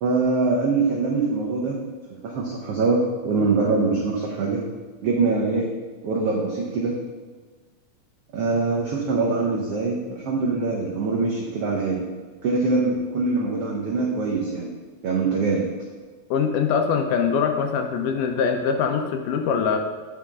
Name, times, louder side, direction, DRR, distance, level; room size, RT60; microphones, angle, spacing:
voice 1, 0.0-1.8 2.1-4.6 5.0-5.7 6.0-6.9 8.3-12.0 12.4-14.7 15.0-15.6, right 3 dB, 85° right, -2 dB, 1.3 m, -23 dB
voice 2, 16.3-19.8, left 6 dB, 80° left, 5 dB, 2.1 m, -23 dB
8.6 x 5.7 x 3.6 m, 1.4 s
omnidirectional pair, 3.8 m